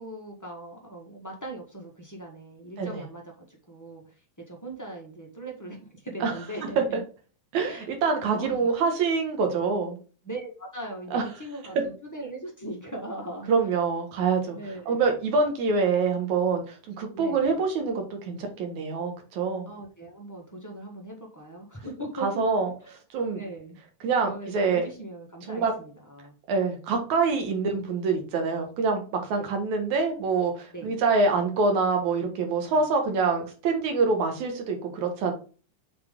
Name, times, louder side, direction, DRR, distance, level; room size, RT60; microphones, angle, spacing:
voice 1, 0.0-4.0 4.5-7.0 7.6-8.0 8.4-8.7 10.2-13.7 14.5-15.2 17.1-17.6 19.6-22.4 23.3-23.8 24.2-26.3 29.4-29.5 30.7-30.9 32.7-32.8, right 1 dB, 20° left, -1 dB, 0.4 m, -39 dB
voice 2, 8.0-10.0 11.1-11.2 11.8-11.9 13.5-14.6 14.9-19.7 22.2-22.7 23.1-23.4 24.0-24.9 25.5-25.7 26.5-29.0 29.3-35.3, right 4 dB, 70° right, 4 dB, 2.9 m, -25 dB
7.5 x 4.1 x 3.7 m, 0.37 s
omnidirectional pair, 3.5 m